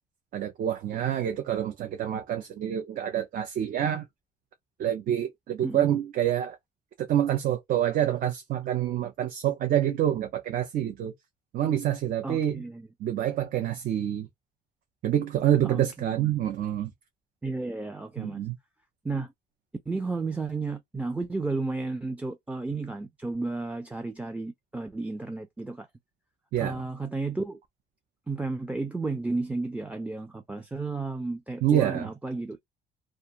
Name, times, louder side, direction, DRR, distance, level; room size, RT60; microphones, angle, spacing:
voice 1, 0.3-4.0 4.8-6.6 7.0-11.1 11.5-12.6 13.0-14.3 15.0-16.9 18.2-18.5 26.5-26.8 31.6-32.1, right 11 dB, 55° right, 0.6 m, -27 dB
voice 2, 5.6-5.9 12.2-12.9 15.6-16.3 17.4-18.4 19.0-19.3 19.9-25.9 26.6-27.6 28.3-32.6, right 3 dB, 10° right, 0.4 m, -33 dB
2.5 x 2.3 x 2.8 m
cardioid pair, 110°, 17 cm